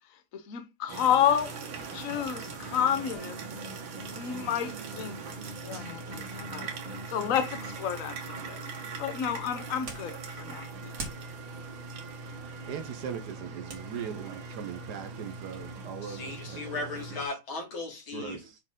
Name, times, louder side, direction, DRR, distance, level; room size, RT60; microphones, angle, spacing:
voice 1, 0.3-1.5 1.9-3.4 4.1-5.1 5.6-6.7 7.1-8.2 8.5-8.6 9.0-10.9, left 9 dB, 55° left, 1.1 m, -30 dB
sound 1, 0.9-17.3, right 4 dB, 85° right, 2.0 m, -41 dB
sound 2, 1.2-7.8, right 1 dB, 30° right, 1.6 m, -46 dB
sound 3, 9.0-15.7, right 3 dB, 50° right, 2.3 m, -48 dB
voice 2, 12.7-16.8 18.1-18.6, right 8 dB, 65° right, 1.1 m, -39 dB
voice 3, 16.0-18.4, left 3 dB, 80° left, 3.0 m, -37 dB
6.2 x 4.4 x 3.6 m
omnidirectional pair, 2.1 m